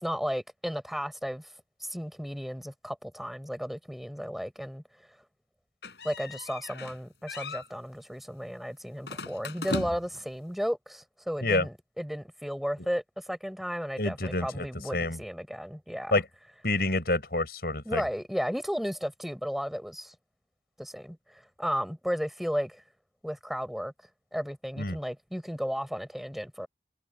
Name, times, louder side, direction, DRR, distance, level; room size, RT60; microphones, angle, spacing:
voice 1, 0.0-1.5 1.8-4.8 6.0-16.2 17.8-20.1 20.8-22.8 23.2-23.9 24.3-26.7, equal, ahead, 5.0 m, -34 dB
sound 1, 5.8-7.0 7.3-7.7 9.0-10.2, left 2 dB, 75° left, 5.8 m, -37 dB
voice 2, 14.0-15.2 16.1-16.2 16.6-18.0 24.8-25.0, left 2 dB, 60° left, 6.3 m, -28 dB
head